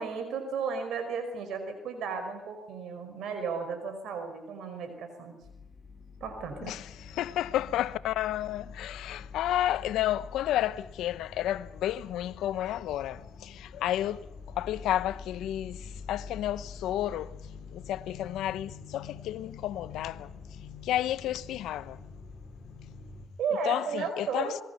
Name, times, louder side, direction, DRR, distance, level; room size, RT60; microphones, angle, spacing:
voice 1, 0.0-5.4 6.2-6.8 23.4-24.6, right 5 dB, 75° right, 5.2 m, -34 dB
sound 1, 5.4-23.3, left 5 dB, 40° left, 4.2 m, -46 dB
voice 2, 7.1-14.2 14.6-15.8 16.1-17.3 17.7-20.3 20.8-22.0 23.7-24.5, left 12 dB, 85° left, 0.9 m, -31 dB
26.5 x 21.0 x 5.8 m
cardioid pair, 90°, 0 cm